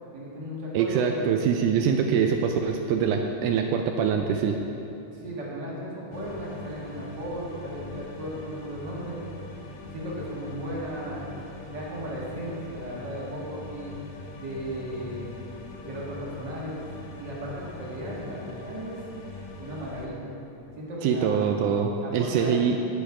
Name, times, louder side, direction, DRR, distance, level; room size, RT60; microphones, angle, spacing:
voice 1, 0.1-1.2 5.1-9.2 9.9-13.9 14.4-15.4 15.8-16.8 17.2-19.0 19.3-20.3 20.8-21.5 22.0-22.6, equal, 40° right, -5 dB, 1.9 m, -36 dB
voice 2, 0.7-4.6 21.0-22.8, right 7 dB, 85° right, 4 dB, 2.0 m, -24 dB
sound 1, 6.1-20.1, left 3 dB, 65° left, 1.5 m, -42 dB
14.5 x 5.3 x 4.8 m, 2.7 s
omnidirectional pair, 3.6 m